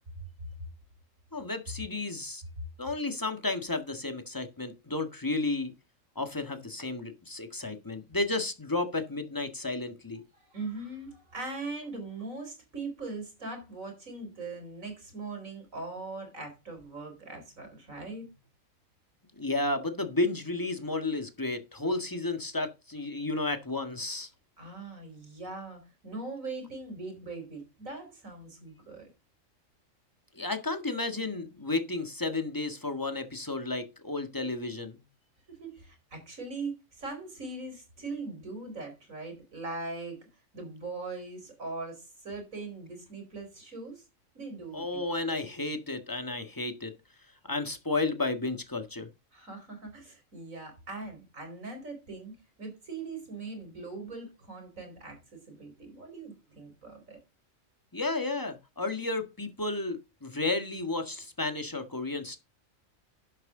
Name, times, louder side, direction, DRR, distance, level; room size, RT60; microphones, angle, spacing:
voice 1, 1.3-2.4 2.8-5.7 6.1-10.2 19.3-24.3 30.3-35.0 44.7-46.9 47.4-49.1 57.9-62.4, left 2 dB, 15° left, 1.6 m, -32 dB
voice 2, 10.4-18.3 24.6-29.1 35.5-40.2 40.5-44.0 44.3-45.0 49.3-57.2, right 3 dB, 80° right, 4.9 m, -41 dB
11.5 x 7.6 x 3.8 m
omnidirectional pair, 1.4 m